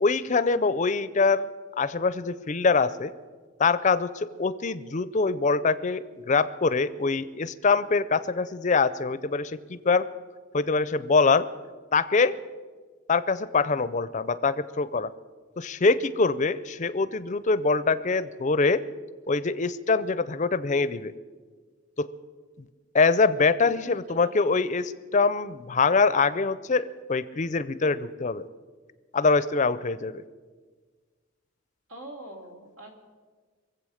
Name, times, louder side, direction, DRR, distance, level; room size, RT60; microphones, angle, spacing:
voice 1, 0.0-1.5 1.8-3.1 3.6-10.1 10.5-11.4 11.9-12.3 13.1-15.1 15.6-18.8 19.3-21.1 22.0-22.1 22.9-28.5 29.1-30.2, left 4 dB, 35° left, 14 dB, 0.5 m, -24 dB
voice 2, 24.2-24.7 31.9-32.9, right 1 dB, 80° right, 2 dB, 2.7 m, -44 dB
23.0 x 8.0 x 6.4 m, 1.5 s
head